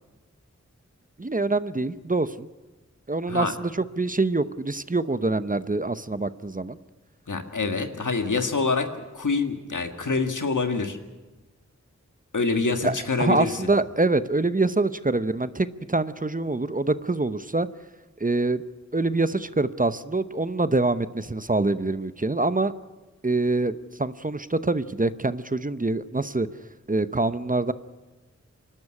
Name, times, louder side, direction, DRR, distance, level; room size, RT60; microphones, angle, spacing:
voice 1, 1.2-2.5 3.1-6.8 12.8-17.7 18.2-18.6 18.9-22.7 23.2-26.5 26.9-27.7, right 2 dB, 30° right, 13 dB, 0.8 m, -25 dB
voice 2, 7.3-8.9 9.1-11.0 12.3-13.7, left 4 dB, 90° left, 6 dB, 1.8 m, -26 dB
27.0 x 12.0 x 9.8 m, 1.2 s
wide cardioid pair, 50°, 30 cm